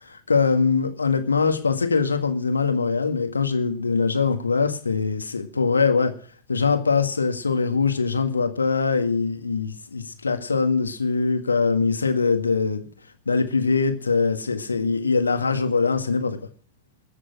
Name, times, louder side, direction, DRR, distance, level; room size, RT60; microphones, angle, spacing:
voice 1, 0.1-6.1 6.5-12.9 13.3-16.4, left 4 dB, 75° left, 7 dB, 1.8 m, -22 dB
21.0 x 7.4 x 5.9 m, 0.43 s
figure-of-eight pair, 90°, 0 cm